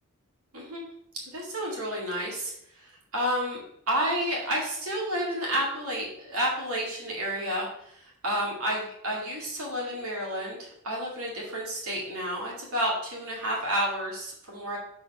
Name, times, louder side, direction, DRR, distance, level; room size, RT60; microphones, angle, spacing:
voice 1, 0.5-0.9 1.3-14.8, equal, 70° right, -3 dB, 2.2 m, -31 dB
6.7 x 4.4 x 5.6 m, 0.72 s
head